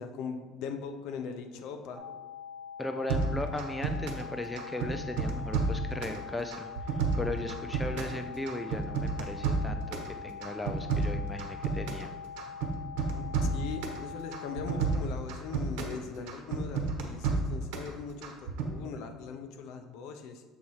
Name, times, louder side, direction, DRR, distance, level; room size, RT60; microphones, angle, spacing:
voice 1, 0.0-2.1 13.1-20.4, left 5 dB, 65° left, 6 dB, 0.7 m, -40 dB
sound 1, 1.9-14.9, left 7 dB, 10° right, 1.2 m, -44 dB
voice 2, 2.8-12.1, left 2 dB, 10° left, 6 dB, 0.3 m, -37 dB
sound 2, 3.1-4.3 4.6-6.2 6.5-8.2 8.5-10.1 10.4-12.1 12.4-14.0 14.3-16.0 16.3-17.9 18.2-18.7, right 5 dB, 85° right, 1.1 m, -31 dB
7.1 x 4.2 x 4.7 m, 1.4 s
cardioid pair, 160°, 0 cm